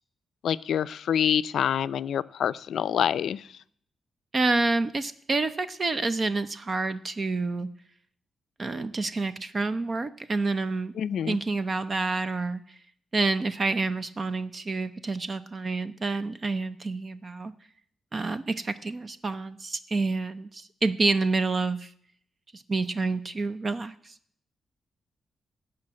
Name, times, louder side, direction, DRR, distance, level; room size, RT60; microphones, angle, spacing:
voice 1, 0.4-3.4 11.0-11.4, left 9 dB, 80° left, 14 dB, 0.4 m, -26 dB
voice 2, 4.3-7.7 8.6-10.9 11.3-12.6 13.1-17.5 18.1-21.9 22.5-24.1, right 3 dB, 35° right, 12 dB, 0.6 m, -28 dB
17.0 x 5.8 x 8.7 m, 0.65 s
wide cardioid pair, 130°, 0 cm